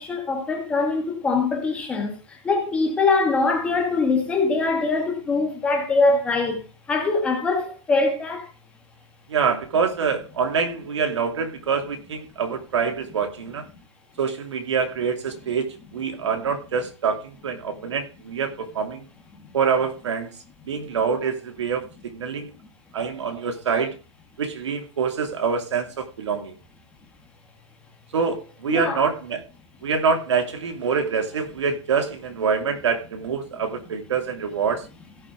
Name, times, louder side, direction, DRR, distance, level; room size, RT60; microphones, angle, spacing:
voice 1, 0.0-6.6 6.9-8.5 28.7-29.0, left 3 dB, 5° left, 1.5 m, -23 dB
voice 2, 9.3-13.6 14.2-19.1 19.5-22.5 22.9-23.9 24.4-26.6 28.1-29.4 29.8-34.9, right 6 dB, 70° right, 2.9 m, -25 dB
16.5 x 5.8 x 4.8 m
hypercardioid pair, 180°, 15 cm